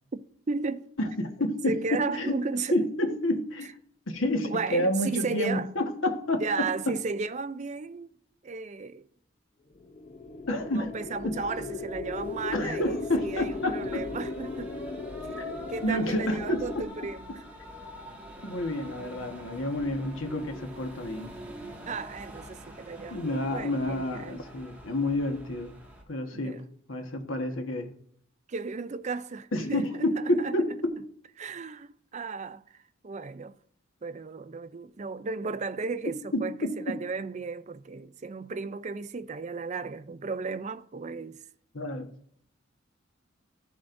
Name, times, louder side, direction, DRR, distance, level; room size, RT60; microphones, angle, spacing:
voice 1, 0.5-0.9 1.7-2.8 4.4-5.7 6.4-8.1 8.4-9.1 10.5-14.7 15.7-17.4 21.9-24.4 26.3-26.7 28.5-30.6 31.4-32.6 33.0-33.6 34.0-41.4, right 4 dB, 35° right, 0.4 m, -34 dB
voice 2, 1.0-2.4 2.7-3.7 4.1-6.7 10.5-11.0 11.2-11.4 12.5-14.1 15.4-15.5 15.8-16.8 18.4-21.3 23.1-25.7 26.1-26.6 26.9-27.9 29.5-30.9 36.3-36.8 41.7-42.1, left 1 dB, 85° left, 1.4 m, -29 dB
sound 1, 9.8-16.8, left 3 dB, 40° left, 0.7 m, -37 dB
sound 2, 12.1-26.0, equal, 10° right, 1.8 m, -45 dB
15.0 x 7.2 x 2.6 m
head